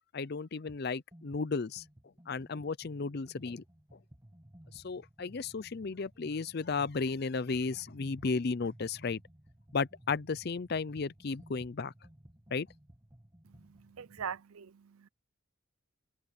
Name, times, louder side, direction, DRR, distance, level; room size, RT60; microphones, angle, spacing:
voice 1, 0.1-1.8 2.3-3.6 3.9-4.0 4.7-9.2 9.7-11.9 12.5-12.7, left 4 dB, 50° left, 0.5 m, -34 dB
sound 1, 0.7-0.8 1.1-14.4, right 1 dB, 15° right, 1.8 m, -57 dB
voice 2, 13.4-15.1, right 7 dB, 90° right, 0.5 m, -43 dB
head